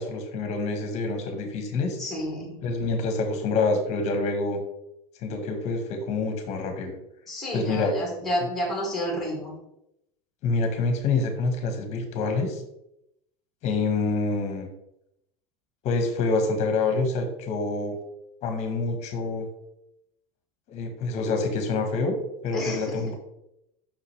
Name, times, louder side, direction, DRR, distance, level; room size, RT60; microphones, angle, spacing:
voice 1, 0.0-2.0 2.6-4.6 5.2-7.0 7.5-7.9 10.4-12.6 13.6-14.7 15.8-18.0 18.4-19.5 20.7-22.2 22.4-23.1, left 3 dB, 40° left, 5 dB, 1.3 m, -26 dB
voice 2, 2.0-2.6 7.3-9.5 22.5-23.0, equal, ahead, -2 dB, 2.5 m, -30 dB
5.9 x 5.8 x 3.3 m, 0.82 s
supercardioid pair, 150°, 18 cm